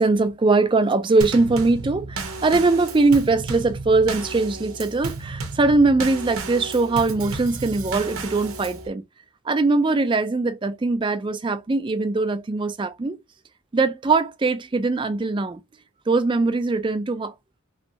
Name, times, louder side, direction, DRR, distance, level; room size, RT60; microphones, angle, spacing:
voice 1, 0.0-9.0 9.4-13.2 13.7-15.6 16.1-17.3, right 3 dB, 25° right, 0.4 m, -21 dB
Drum kit / Snare drum / Bass drum, 1.2-8.9, right 3 dB, 90° right, 0.8 m, -33 dB
3.1 x 2.6 x 3.0 m
head